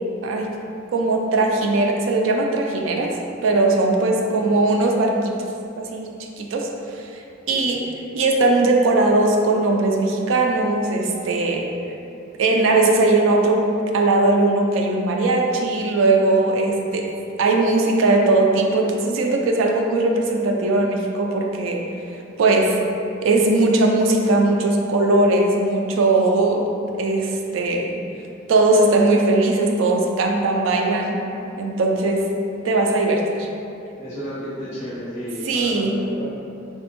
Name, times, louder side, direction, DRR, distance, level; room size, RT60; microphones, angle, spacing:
voice 1, 0.2-0.5 0.9-3.1 3.4-5.4 5.8-6.1 6.4-6.7 7.0-7.2 7.5-7.8 8.1-11.7 12.4-13.6 13.9-17.1 17.4-21.8 22.4-22.8 23.2-26.7 27.0-27.9 28.5-31.2 31.6-32.3 32.6-33.5 35.5-36.0, right 2 dB, 75° right, 1 dB, 0.3 m, -19 dB
voice 2, 4.1-4.4 7.5-7.8 34.0-36.3, equal, 35° left, -13 dB, 0.8 m, -33 dB
3.2 x 2.1 x 2.9 m, 2.7 s
head